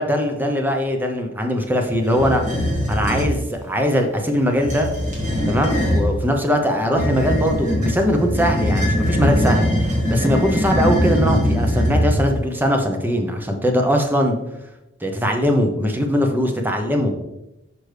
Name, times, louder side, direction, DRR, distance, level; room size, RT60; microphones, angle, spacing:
voice 1, 0.0-2.4 2.9-4.9 5.5-9.7 10.1-14.4 15.0-17.1, equal, 10° right, 4 dB, 0.7 m, -20 dB
sound 1, 2.1-3.4 4.5-6.1 6.9-12.4, equal, 40° right, 1.8 m, -21 dB
6.3 x 5.2 x 3.3 m, 0.91 s
head